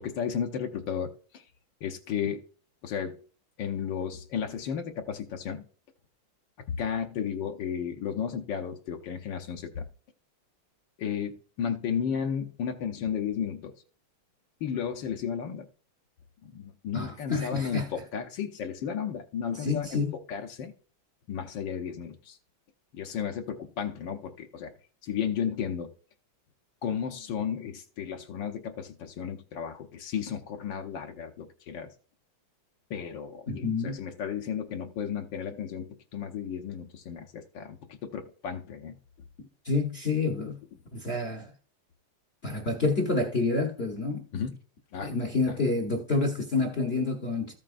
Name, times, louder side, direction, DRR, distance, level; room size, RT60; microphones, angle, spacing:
voice 1, 0.0-1.4 1.8-2.4 2.8-3.2 3.6-5.7 6.7-9.9 11.0-13.7 14.6-15.7 16.4-20.7 21.3-22.4 22.9-24.7 25.0-25.9 26.8-31.9 32.9-39.0 44.3-44.5 44.9-45.1, left 7 dB, 65° left, 1.4 m, -33 dB
voice 2, 16.9-17.9 19.6-20.1 33.5-34.0 39.6-40.6 40.9-41.5 42.4-44.3 45.0-47.5, left 3 dB, 40° left, 1.0 m, -28 dB
14.0 x 7.5 x 2.5 m
omnidirectional pair, 2.3 m